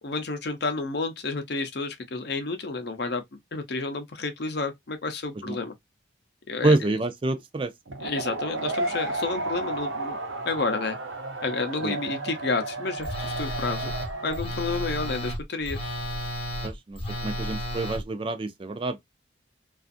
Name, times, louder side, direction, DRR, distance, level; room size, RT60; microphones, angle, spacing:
voice 1, 0.0-3.2 3.5-5.7 6.5-6.8 8.0-10.2 10.4-11.0 11.4-13.9 14.2-15.8, left 3 dB, 60° left, 0.6 m, -30 dB
voice 2, 6.6-7.7 11.8-12.0 16.6-19.0, right 2 dB, 30° right, 0.4 m, -27 dB
sound 1, 7.9-14.4, right 2 dB, 90° right, 0.8 m, -33 dB
Telephone, 13.0-18.0, equal, 30° left, 0.8 m, -32 dB
2.5 x 2.4 x 2.5 m
head